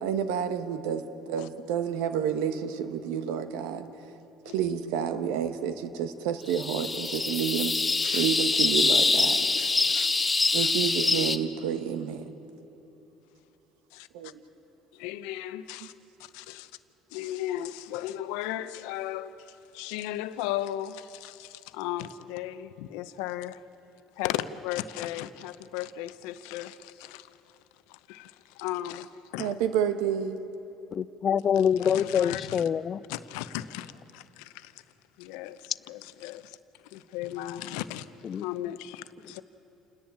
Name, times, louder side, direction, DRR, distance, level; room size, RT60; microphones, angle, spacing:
voice 1, 0.0-3.9 4.5-7.8 8.1-9.4 10.5-12.3 14.1-14.3 29.4-30.4, right 8 dB, 85° right, 1.2 m, -29 dB
sound 1, 6.5-11.4, left 3 dB, 20° left, 0.9 m, -25 dB
voice 2, 9.6-10.1 10.6-10.7 13.9-14.3 14.9-15.9 16.2-16.7 17.1-23.6 24.2-27.3 27.9-29.5 31.6-32.6 33.1-34.7 35.2-36.6 36.8-39.4, left 13 dB, 80° left, 0.7 m, -36 dB
voice 3, 30.9-33.0 38.3-38.5, left 8 dB, 45° left, 0.5 m, -25 dB
28.5 x 10.5 x 8.8 m
supercardioid pair, 80°, 0 cm